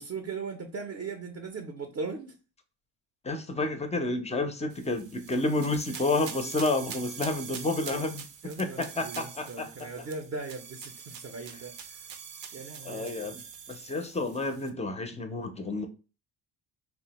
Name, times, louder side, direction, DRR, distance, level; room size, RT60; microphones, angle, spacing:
voice 1, 0.0-2.3 8.4-12.1 12.5-13.4, right 4 dB, 35° right, 5 dB, 0.5 m, -39 dB
voice 2, 3.2-8.2 8.6-10.1 12.8-13.4 13.7-15.9, left 2 dB, 15° left, 7 dB, 0.4 m, -30 dB
sound 1, 4.7-14.7, right 7 dB, 80° right, 0.6 m, -44 dB
3.4 x 2.0 x 2.9 m, 0.34 s
cardioid pair, 95°, 42 cm